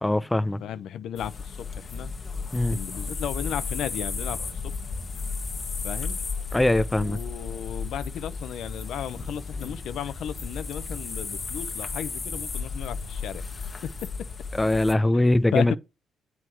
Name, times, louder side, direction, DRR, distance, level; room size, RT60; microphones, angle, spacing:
voice 1, 0.0-0.6 2.5-2.8 6.5-7.2 14.6-15.8, left 1 dB, 10° left, 0.5 m, -22 dB
voice 2, 0.6-2.1 2.7-4.4 4.6-4.7 5.8-6.2 7.0-13.4 15.5-15.8, left 10 dB, 75° left, 0.7 m, -34 dB
sound 1, 1.2-14.9, left 4 dB, 35° left, 1.3 m, -34 dB
7.9 x 4.7 x 4.7 m
cardioid pair, 90°, 0 cm